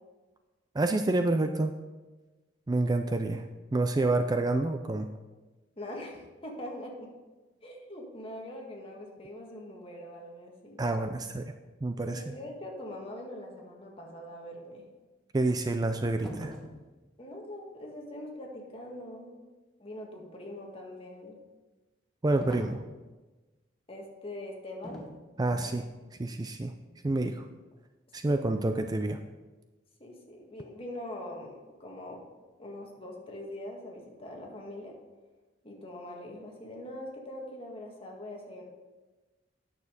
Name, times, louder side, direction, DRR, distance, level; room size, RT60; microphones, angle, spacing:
voice 1, 0.7-1.7 2.7-3.4 3.7-5.1 10.8-11.5 11.8-12.3 15.3-16.6 22.2-22.8 25.4-25.9 26.2-26.7 27.0-27.5 28.1-29.2, right 2 dB, 20° right, 7 dB, 0.4 m, -28 dB
voice 2, 5.8-7.1 7.6-10.8 12.1-14.8 17.2-19.4 19.8-21.4 23.9-25.0 28.2-28.4 30.0-32.2 32.6-35.0 35.6-38.6, left 1 dB, 30° left, 0 dB, 1.7 m, -43 dB
sound 1, 16.2-16.8 22.4-22.9 24.8-25.2 25.5-25.8, equal, 5° left, 1.3 m, -42 dB
9.5 x 6.6 x 5.0 m, 1.2 s
head